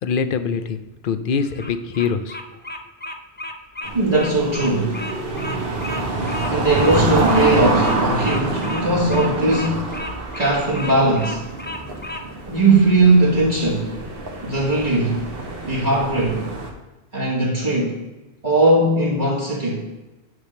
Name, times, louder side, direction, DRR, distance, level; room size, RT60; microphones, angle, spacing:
voice 1, 0.0-2.4, left 6 dB, 60° left, 11 dB, 0.7 m, -24 dB
Bird vocalization bird call bird song, 1.4-12.2, left 1 dB, 15° left, 0.4 m, -33 dB
sound 1, 3.8-16.7, right 2 dB, 60° right, 1.4 m, -26 dB
voice 2, 3.9-5.0 6.5-10.0 10.3-11.5 12.5-13.9 14.4-15.3 15.6-16.4 17.1-18.0 18.4-19.9, right 2 dB, 40° right, -6 dB, 1.6 m, -19 dB
9.6 x 3.5 x 6.4 m, 1.1 s
omnidirectional pair, 1.1 m